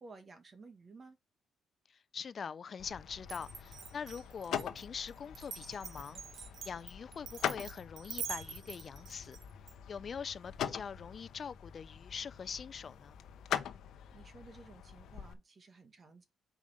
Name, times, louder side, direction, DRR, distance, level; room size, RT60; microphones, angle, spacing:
voice 1, 0.0-1.2 14.1-16.2, right 3 dB, 35° right, 1.5 m, -55 dB
voice 2, 2.1-6.2 6.6-9.4 9.9-13.2, left 6 dB, 45° left, 0.6 m, -43 dB
sound 1, 2.8-15.3, left 9 dB, 75° left, 0.8 m, -43 dB
Glass, 3.2-9.7, right 7 dB, 65° right, 1.3 m, -45 dB
5.0 x 4.8 x 5.4 m
cardioid pair, 90°, 0 cm